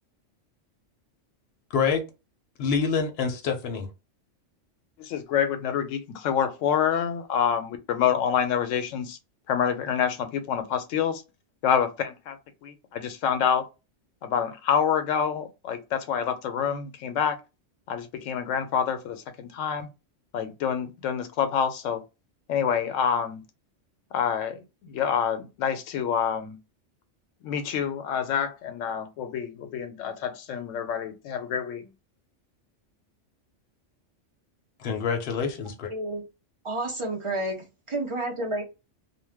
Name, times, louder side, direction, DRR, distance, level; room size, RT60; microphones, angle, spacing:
voice 1, 1.7-2.0 2.6-3.9 34.8-35.9, left 5 dB, 60° left, 0.8 m, -26 dB
voice 2, 5.0-9.2 9.5-11.2 11.6-13.7 14.2-17.4 17.9-19.9 20.3-22.0 22.5-23.4 24.1-26.6 27.4-31.9, left 8 dB, 85° left, 0.9 m, -27 dB
voice 3, 35.9-36.2 36.6-38.6, right 1 dB, 40° right, 0.4 m, -30 dB
2.5 x 2.2 x 3.4 m
omnidirectional pair, 1.3 m